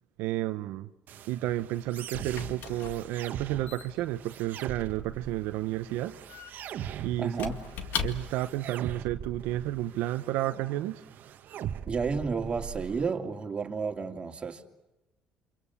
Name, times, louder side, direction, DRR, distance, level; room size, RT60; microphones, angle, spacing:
voice 1, 0.2-0.9 1.3-6.1 7.0-7.5 8.0-11.0, right 14 dB, 85° right, 0.8 m, -31 dB
sound 1, 1.1-13.1, right 10 dB, 60° right, 1.1 m, -42 dB
Squeak / Wood, 1.4-8.6, left 7 dB, 70° left, 2.1 m, -40 dB
voice 2, 7.2-7.6 11.8-14.6, right 5 dB, 30° right, 2.7 m, -31 dB
28.5 x 26.0 x 7.0 m
cardioid pair, 90°, 3 cm